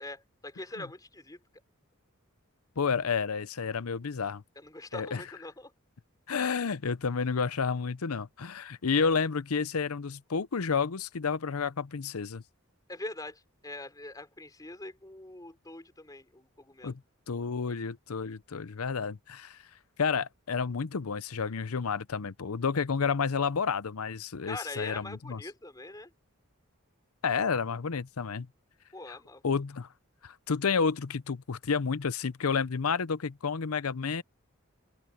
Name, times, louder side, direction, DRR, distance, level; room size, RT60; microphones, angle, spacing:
voice 1, 0.0-1.4 4.6-5.7 12.9-16.9 24.4-26.1 28.9-29.4, left 2 dB, 15° left, 3.6 m, -43 dB
voice 2, 2.8-4.4 4.9-5.2 6.3-12.4 16.8-17.0 17.3-19.6 20.0-25.4 27.2-28.5 29.4-29.9 30.2-34.2, left 5 dB, 85° left, 0.7 m, -30 dB
open air
head